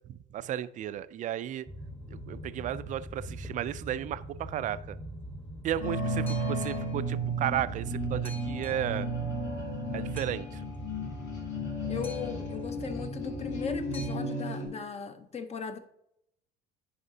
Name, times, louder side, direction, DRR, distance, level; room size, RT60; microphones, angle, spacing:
voice 1, 0.1-1.7 2.1-5.0 5.6-9.1 9.9-10.6, right 11 dB, 35° right, 15 dB, 0.4 m, -34 dB
Boat Water vehicle, 1.7-14.2, right 1 dB, 10° left, 1.2 m, -42 dB
sound 1, 5.8-14.7, right 1 dB, 55° left, 2.8 m, -34 dB
voice 2, 11.9-15.8, left 6 dB, 30° left, 10 dB, 0.8 m, -38 dB
9.9 x 4.9 x 2.7 m, 0.77 s
cardioid pair, 130°, 21 cm